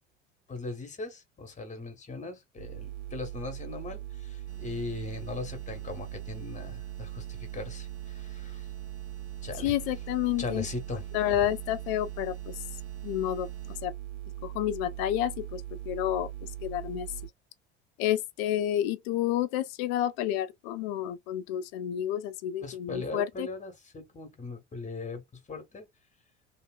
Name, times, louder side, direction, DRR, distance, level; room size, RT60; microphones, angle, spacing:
voice 1, 0.5-8.7 9.4-9.7 10.4-11.0 22.6-25.2 25.5-25.9, left 3 dB, 20° left, 1.3 m, -39 dB
sound 1, 2.6-17.3, right 13 dB, 70° right, 1.4 m, -40 dB
sound 2, 4.5-13.8, right 9 dB, 40° right, 1.1 m, -54 dB
voice 2, 9.6-10.7 11.1-12.6 13.0-13.9 14.4-17.1 18.0-23.5, left 12 dB, 60° left, 0.6 m, -30 dB
2.8 x 2.8 x 2.3 m
figure-of-eight pair, 65°, 34 cm